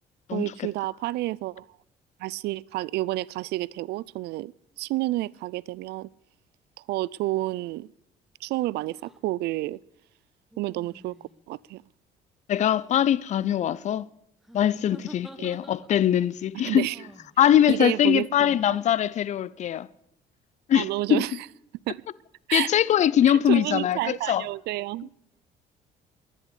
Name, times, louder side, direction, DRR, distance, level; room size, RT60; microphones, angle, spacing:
voice 1, 0.3-1.7 2.2-4.5 4.8-6.1 6.8-7.9 8.4-9.8 10.6-11.2 11.5-11.8 15.4-15.5 16.5-17.0 17.7-18.8 20.7-21.4 21.9-22.0 22.5-22.7 23.5-25.1, right 18 dB, 75° right, 0.4 m, -30 dB
sound 1, 9.0-9.2 10.5-11.4 12.5-13.1 14.4-16.2 16.9-17.3 18.5-19.0, equal, ahead, 1.2 m, -49 dB
voice 2, 12.5-14.1 14.5-16.8 17.4-19.9 20.7-21.2 22.5-24.4, left 10 dB, 45° left, 0.5 m, -22 dB
10.5 x 10.5 x 8.1 m
cardioid pair, 110°, 17 cm